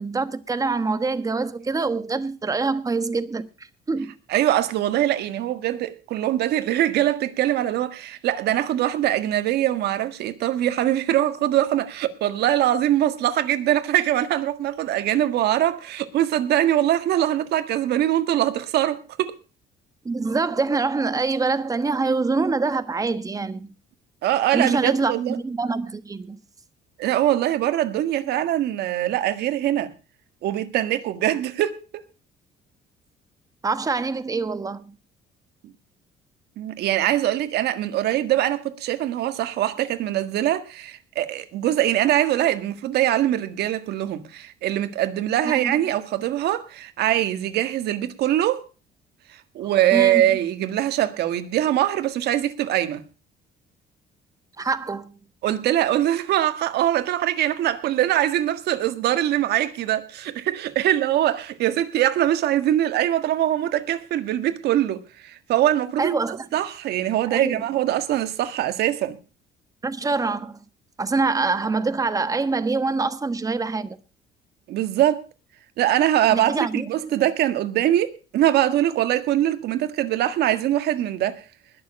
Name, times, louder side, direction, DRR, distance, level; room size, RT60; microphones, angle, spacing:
voice 1, 0.0-3.5 3.9-4.1 20.0-23.7 24.5-26.4 33.6-35.0 45.4-45.7 49.9-50.2 54.6-55.2 66.0-66.4 67.3-67.6 69.8-70.6 71.0-74.0 76.3-77.2, right 4 dB, 20° right, 1.2 m, -25 dB
voice 2, 4.3-19.4 24.2-25.4 27.0-29.9 30.4-32.0 35.6-35.7 36.6-48.6 49.3-53.0 55.4-69.2 74.7-75.2 75.8-81.4, right 12 dB, 75° right, 1.7 m, -23 dB
20.5 x 7.1 x 5.3 m
cardioid pair, 110°, 17 cm